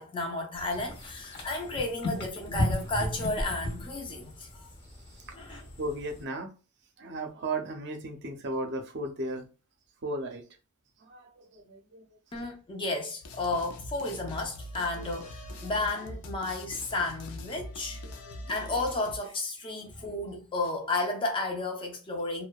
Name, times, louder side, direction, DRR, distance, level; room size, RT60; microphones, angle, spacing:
voice 1, 0.0-4.7 5.3-5.7 12.3-18.0 18.5-22.5, left 2 dB, 25° left, 0.5 m, -33 dB
sound 1, 0.5-6.2, left 1 dB, 50° left, 0.8 m, -35 dB
voice 2, 5.8-6.5 7.0-9.4 10.0-10.4 11.0-12.0 15.6-15.7 18.0-18.4 19.8-19.9, right 2 dB, 50° right, 0.5 m, -35 dB
sound 2, 13.2-19.2, left 1 dB, 85° left, 0.4 m, -43 dB
2.6 x 2.1 x 2.2 m
head